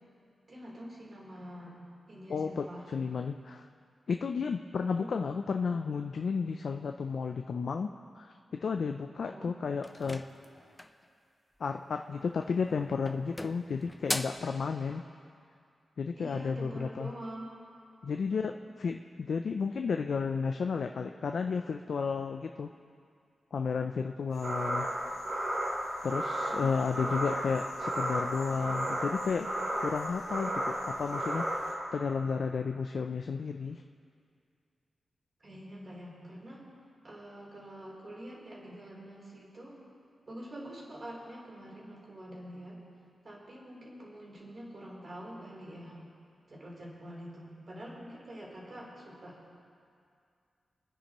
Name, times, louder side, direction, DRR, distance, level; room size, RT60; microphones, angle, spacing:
voice 1, 0.5-1.8 2.1-2.8 5.0-5.1 9.2-9.5 16.2-17.5 18.6-18.9 28.5-28.7 35.4-36.7 37.0-39.8 40.3-42.8 43.2-46.0 46.5-49.4, right 1 dB, 45° right, -4 dB, 3.7 m, -46 dB
voice 2, 2.3-3.7 4.1-8.3 8.6-10.2 11.6-15.0 16.0-17.1 18.0-22.7 23.5-24.9 26.0-29.5 29.8-33.8, left 5 dB, 65° left, 5 dB, 0.4 m, -33 dB
sound 1, 9.8-11.1 12.3-12.7 13.1-14.5, left 1 dB, 15° left, 0.6 m, -38 dB
sound 2, 24.4-31.7, right 1 dB, 80° right, 3.3 m, -33 dB
24.5 x 9.9 x 3.1 m, 2.4 s
wide cardioid pair, 90°, 0 cm